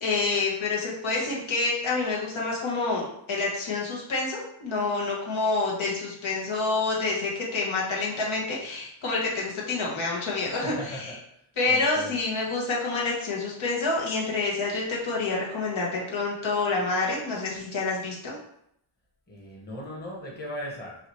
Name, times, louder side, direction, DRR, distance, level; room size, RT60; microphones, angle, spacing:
voice 1, 0.0-11.1 11.6-18.4, left 3 dB, 70° left, -4 dB, 1.3 m, -28 dB
voice 2, 10.4-11.3 11.7-12.2 19.3-21.0, equal, 20° left, -3 dB, 1.1 m, -38 dB
4.8 x 2.8 x 3.1 m, 0.74 s
wide cardioid pair, 115°, 48 cm